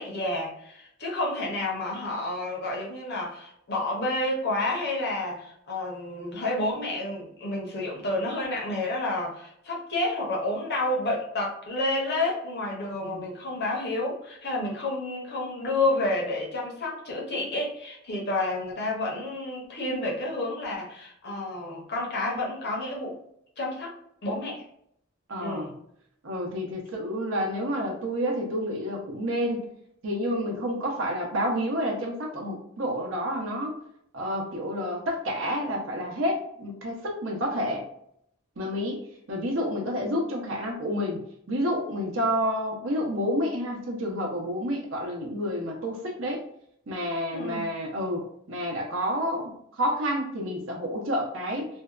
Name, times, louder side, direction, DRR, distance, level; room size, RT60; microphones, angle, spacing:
voice 1, 0.0-23.2 23.6-23.9 24.2-24.6 25.4-25.7 47.3-47.7, left 2 dB, 55° left, -2 dB, 0.8 m, -30 dB
voice 2, 25.3-25.7 26.2-29.7 30.0-33.7 34.1-37.9 38.6-39.0 39.3-46.4 46.9-51.7, equal, 65° right, 0 dB, 0.7 m, -29 dB
2.6 x 2.2 x 2.3 m, 0.72 s
head